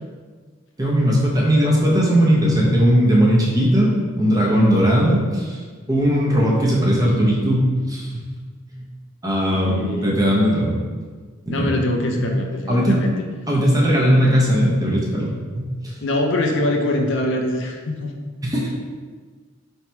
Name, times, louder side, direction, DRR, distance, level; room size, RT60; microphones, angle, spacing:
voice 1, 0.8-5.6 5.9-8.2 8.7-8.9 9.2-10.7 11.5-11.7 12.2-12.3 12.7-13.0 13.5-15.3 15.6-15.9 18.4-18.7, equal, 20° right, -4 dB, 0.7 m, -18 dB
voice 2, 9.5-10.2 11.5-13.1 16.0-18.1, left 1 dB, 65° left, 3 dB, 0.5 m, -23 dB
3.2 x 2.9 x 4.4 m, 1.5 s
head